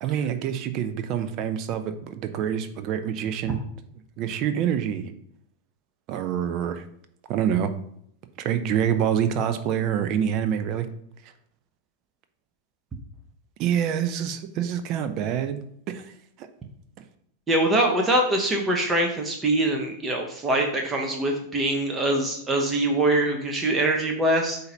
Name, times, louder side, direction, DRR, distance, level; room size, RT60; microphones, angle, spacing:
voice 1, 0.0-3.6 4.2-5.1 6.1-6.8 7.3-7.7 8.4-10.9 13.6-16.1 16.4-16.5, right 9 dB, 40° right, 10 dB, 0.6 m, -26 dB
voice 2, 17.5-24.6, right 1 dB, 15° right, 2 dB, 0.9 m, -23 dB
8.0 x 2.8 x 5.2 m, 0.70 s
figure-of-eight pair, 90°, 0 cm